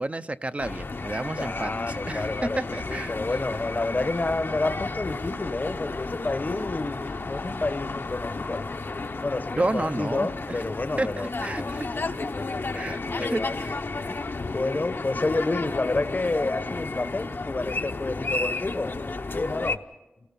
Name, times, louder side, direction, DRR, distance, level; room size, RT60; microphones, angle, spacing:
voice 1, 0.0-1.7 2.1-3.2 9.6-10.6 11.0-11.9 12.7-13.7, right 2 dB, 35° right, 12 dB, 0.6 m, -30 dB
sound 1, 0.6-19.8, left 3 dB, 70° left, 0.9 m, -32 dB
voice 2, 1.4-8.6 9.2-12.3 13.0-13.6 14.1-19.8, left 2 dB, 50° left, 10 dB, 0.9 m, -30 dB
30.0 x 18.5 x 5.4 m, 1.0 s
wide cardioid pair, 55°, 4 cm